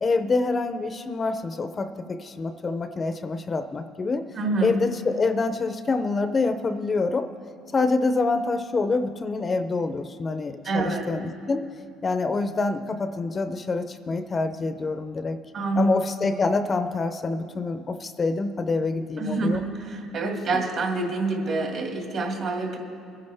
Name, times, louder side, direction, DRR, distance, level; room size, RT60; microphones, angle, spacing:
voice 1, 0.0-4.2 4.6-7.3 7.7-11.7 12.0-15.4 15.8-19.6, left 3 dB, 30° left, 10 dB, 0.5 m, -26 dB
voice 2, 4.3-4.8 10.6-11.1 15.5-15.9 19.2-22.8, right 3 dB, 50° right, 1 dB, 2.2 m, -27 dB
23.5 x 9.6 x 3.4 m, 2.4 s
cardioid pair, 110°, 0 cm